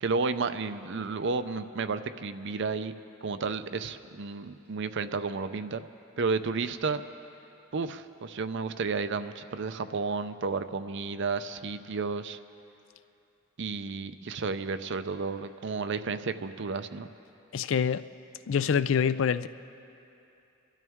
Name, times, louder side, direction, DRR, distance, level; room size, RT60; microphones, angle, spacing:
voice 1, 0.0-2.9 3.2-5.9 6.2-7.0 7.7-12.4 13.6-17.1, right 4 dB, 60° right, 11 dB, 0.6 m, -32 dB
voice 2, 17.5-18.0 18.5-19.5, left 7 dB, 65° left, 14 dB, 0.4 m, -25 dB
26.5 x 12.5 x 3.6 m, 2.8 s
head